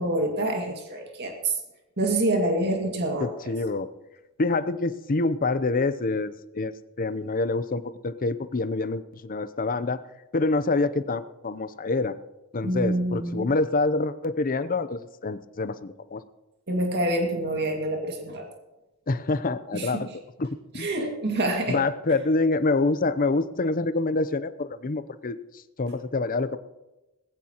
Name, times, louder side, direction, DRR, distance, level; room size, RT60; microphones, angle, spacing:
voice 1, 0.0-1.5 2.0-3.3 12.6-13.5 16.7-18.5 19.7-20.1 20.7-21.8, right 1 dB, 50° right, 2 dB, 2.1 m, -26 dB
voice 2, 3.2-3.9 4.4-10.0 10.3-12.1 12.5-16.2 19.1-20.1 20.4-20.9 21.7-25.4 25.8-26.6, left 3 dB, 40° left, 13 dB, 0.6 m, -26 dB
20.0 x 15.0 x 3.0 m, 1.0 s
head